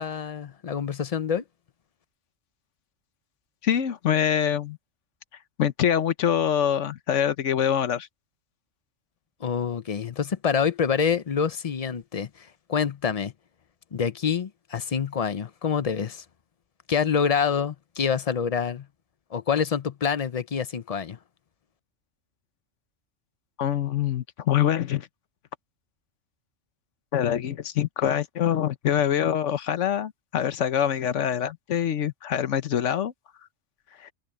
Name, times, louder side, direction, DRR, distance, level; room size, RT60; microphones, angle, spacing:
voice 1, 0.0-1.4 9.4-13.3 13.9-16.2 16.9-18.9 19.3-21.2, left 7 dB, 40° left, 0.6 m, -26 dB
voice 2, 3.6-4.8 5.6-8.1 23.6-25.1 27.1-33.1 34.0-34.1, left 9 dB, 80° left, 1.2 m, -25 dB
omnidirectional pair, 1.2 m